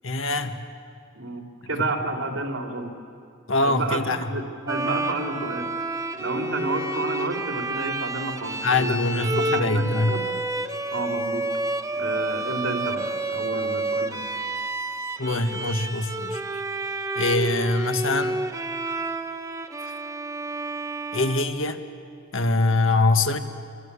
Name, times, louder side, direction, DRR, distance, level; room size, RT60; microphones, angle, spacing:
voice 1, 0.0-0.7 3.5-4.3 8.6-10.2 15.2-16.4 17.1-18.4 21.1-21.8 22.3-23.4, left 2 dB, 75° left, 7 dB, 1.7 m, -23 dB
voice 2, 1.1-2.9 3.6-4.0 4.3-5.7 6.2-10.2 10.9-11.5 12.0-14.2, right 2 dB, 75° right, 2 dB, 3.8 m, -30 dB
Bowed string instrument, 4.7-22.1, right 2 dB, 15° right, 1.1 m, -30 dB
27.5 x 24.0 x 8.5 m, 2.4 s
head